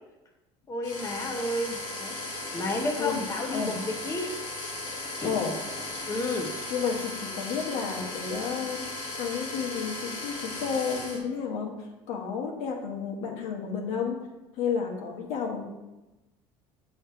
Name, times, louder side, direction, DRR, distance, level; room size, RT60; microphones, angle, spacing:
voice 1, 0.7-2.2 2.5-4.4 5.2-5.4 6.1-6.5, left 1 dB, 25° left, 1 dB, 0.8 m, -31 dB
sound 1, 0.8-11.2, left 2 dB, 55° left, 1.9 m, -36 dB
voice 2, 6.7-8.8 9.2-11.7 12.1-14.2 14.6-15.6, left 6 dB, 70° left, 1 dB, 1.2 m, -31 dB
6.7 x 3.1 x 4.6 m, 1.0 s
supercardioid pair, 90°, 12 cm